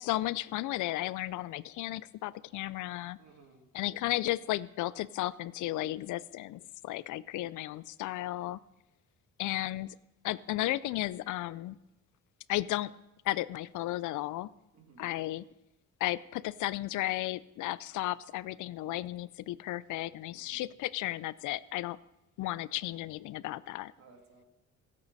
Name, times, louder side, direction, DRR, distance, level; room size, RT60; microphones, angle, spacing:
voice 1, 0.0-3.2 3.7-8.6 9.4-10.0 10.2-11.8 12.5-12.9 13.2-14.5 15.0-15.4 16.0-22.0 22.4-23.9, left 16 dB, 85° left, 19 dB, 0.5 m, -34 dB
voice 2, 3.2-3.7 14.7-15.1 20.3-20.7 24.0-24.4, right 4 dB, 60° right, 2 dB, 2.7 m, -58 dB
20.5 x 8.4 x 4.1 m, 0.92 s
cardioid pair, 90°, 30 cm